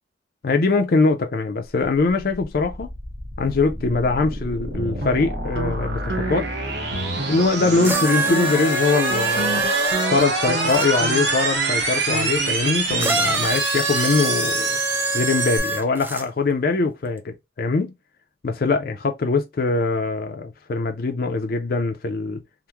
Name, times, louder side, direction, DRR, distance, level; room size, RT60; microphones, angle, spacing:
voice 1, 0.4-2.9 3.4-6.5 7.3-9.7 10.1-14.8 15.1-17.9 18.4-22.4, left 3 dB, 50° left, 0.4 m, -22 dB
sound 1, 2.2-15.6, right 3 dB, 70° right, 1.2 m, -26 dB
sound 2, 4.7-5.8 6.1-6.5 6.9-7.5 7.7-7.9 8.3-8.7 9.1-13.5, right 1 dB, 85° right, 1.4 m, -31 dB
sound 3, 7.8-10.9 13.0-16.2 17.2-17.3, right 2 dB, 10° right, 0.3 m, -25 dB
3.4 x 2.1 x 2.8 m
head